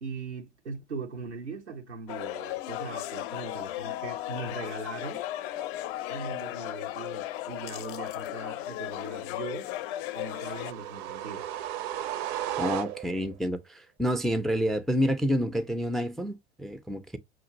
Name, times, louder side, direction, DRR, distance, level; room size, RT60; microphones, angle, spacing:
voice 1, 0.0-5.2 6.1-9.7 10.1-11.6, right 4 dB, 90° right, 0.8 m, -40 dB
sound 1, 2.1-10.7, left 14 dB, 55° left, 0.5 m, -35 dB
sound 2, 10.1-13.3, right 12 dB, 50° right, 0.6 m, -35 dB
voice 2, 12.6-17.2, equal, ahead, 0.4 m, -28 dB
6.0 x 2.3 x 2.7 m
figure-of-eight pair, 80°, 33 cm